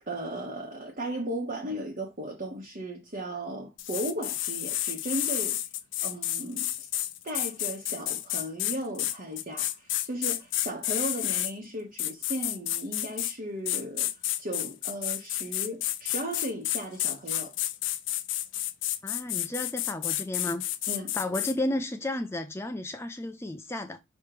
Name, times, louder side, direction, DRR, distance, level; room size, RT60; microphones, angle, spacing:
voice 1, 0.1-5.6 6.0-6.9 7.2-14.1 14.4-17.5 20.9-21.1, right 1 dB, 40° right, 1.3 m, -36 dB
sound 1, 3.8-11.5 12.0-13.4 13.7-21.5, left 13 dB, 70° left, 0.6 m, -30 dB
voice 2, 19.0-20.6 21.1-24.0, left 1 dB, 10° left, 0.5 m, -32 dB
5.8 x 3.3 x 5.0 m
head